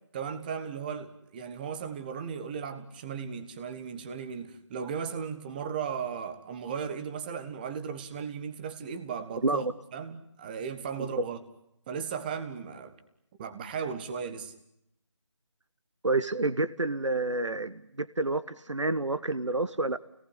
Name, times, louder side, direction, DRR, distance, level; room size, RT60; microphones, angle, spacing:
voice 1, 0.1-9.7 9.9-11.4 11.9-13.0 13.4-14.5, right 6 dB, 20° right, 10 dB, 1.5 m, -36 dB
voice 2, 16.0-20.0, right 2 dB, 85° right, 14 dB, 1.2 m, -29 dB
29.0 x 19.0 x 9.9 m, 0.79 s
figure-of-eight pair, 160°, 15 cm